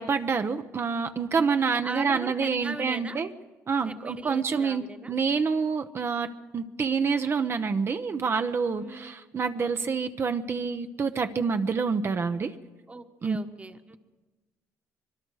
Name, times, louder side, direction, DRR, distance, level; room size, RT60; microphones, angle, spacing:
voice 1, 0.0-3.3 3.7-12.5 13.2-13.4, right 5 dB, 40° right, 8 dB, 0.9 m, -27 dB
voice 2, 1.7-3.2 3.8-5.2 8.8-9.2 12.9-14.0, right 3 dB, 20° right, 8 dB, 1.4 m, -40 dB
25.0 x 22.5 x 4.9 m, 1.2 s
cardioid pair, 90°, 6 cm